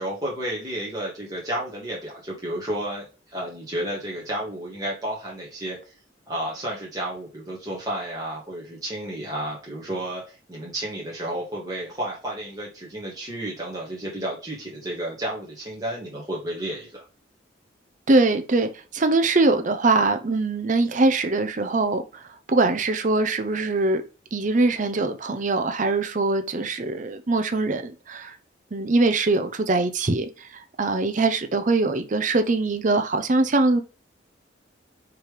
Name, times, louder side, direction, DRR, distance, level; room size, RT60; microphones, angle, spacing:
voice 1, 0.0-5.9 6.3-17.0, right 1 dB, 20° right, 1.7 m, -32 dB
voice 2, 18.1-22.2 22.5-24.0 24.3-28.3 28.7-33.8, right 3 dB, 45° right, 0.7 m, -22 dB
5.8 x 3.3 x 5.1 m
head